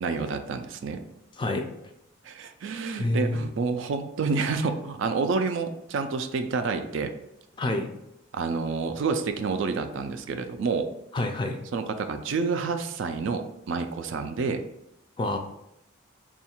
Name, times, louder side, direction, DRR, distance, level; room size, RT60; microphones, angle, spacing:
voice 1, 0.0-1.0 2.2-7.1 8.3-10.9 11.7-14.6, right 4 dB, 60° right, 8 dB, 0.3 m, -28 dB
voice 2, 3.0-3.4 7.6-7.9 11.1-11.6 15.2-15.4, left 2 dB, 20° left, 4 dB, 0.3 m, -27 dB
3.5 x 2.3 x 4.3 m, 0.82 s
head